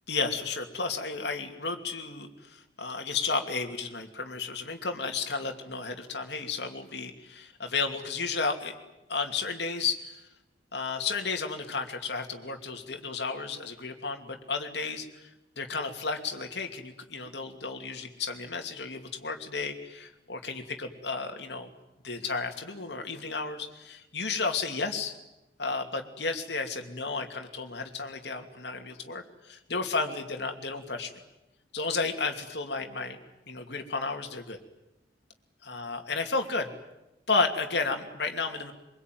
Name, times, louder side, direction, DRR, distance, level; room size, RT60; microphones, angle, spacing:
voice 1, 0.1-8.7 9.1-10.1 10.7-15.3 15.6-21.7 22.0-25.1 25.6-31.1 31.7-33.2 33.5-34.6 35.6-36.7 37.3-38.7, left 4 dB, 70° left, 4 dB, 2.8 m, -32 dB
24.0 x 23.0 x 9.4 m, 0.96 s
head